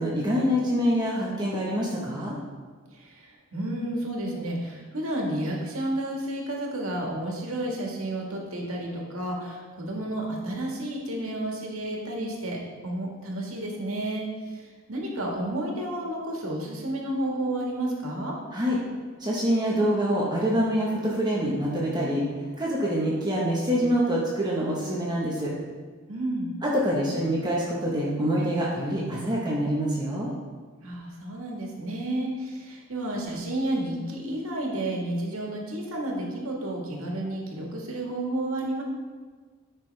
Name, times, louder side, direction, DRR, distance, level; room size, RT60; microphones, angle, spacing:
voice 1, 0.0-2.4 18.5-18.8 19.2-22.2 22.6-25.5 26.6-30.3, equal, 20° right, -5 dB, 1.3 m, -25 dB
voice 2, 2.9-18.4 26.1-26.5 30.8-38.8, right 1 dB, 85° right, -1 dB, 1.9 m, -31 dB
13.0 x 6.1 x 3.4 m, 1.5 s
head